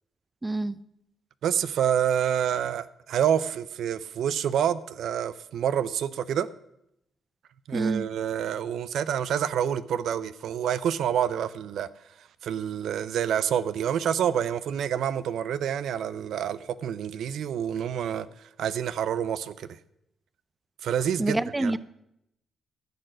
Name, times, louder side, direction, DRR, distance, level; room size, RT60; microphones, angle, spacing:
voice 1, 0.4-0.8 7.7-8.1 21.2-21.8, right 2 dB, 15° right, 0.4 m, -27 dB
voice 2, 1.4-6.5 7.7-11.9 12.4-18.3 18.6-19.7 20.8-21.8, right 9 dB, 70° right, 0.5 m, -27 dB
14.5 x 6.6 x 6.3 m
cardioid pair, 90°, 0 cm